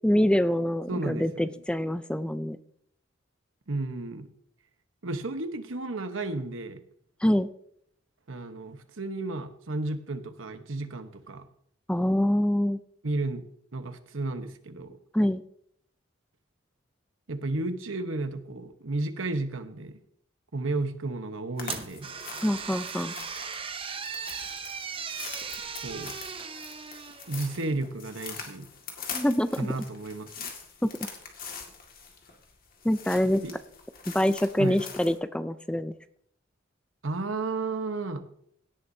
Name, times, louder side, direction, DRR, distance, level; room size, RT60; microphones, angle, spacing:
voice 1, 0.0-2.6 7.2-7.5 11.9-12.8 15.1-15.4 22.4-23.1 29.1-29.7 30.8-30.9 32.8-33.4 34.1-35.9, left 1 dB, 5° left, 12 dB, 0.4 m, -25 dB
voice 2, 0.9-1.5 3.7-4.3 5.0-6.8 8.3-11.4 13.0-13.4 13.7-15.0 17.3-19.9 20.5-22.1 25.8-26.2 27.3-28.7 29.5-30.5 33.4-33.5 34.6-34.8 37.0-38.3, right 2 dB, 85° right, 8 dB, 1.1 m, -33 dB
sound 1, 21.6-35.2, left 6 dB, 50° left, 2.0 m, -43 dB
sound 2, 21.6-27.8, right 6 dB, 30° right, 0.7 m, -38 dB
17.0 x 10.0 x 2.7 m, 0.68 s
head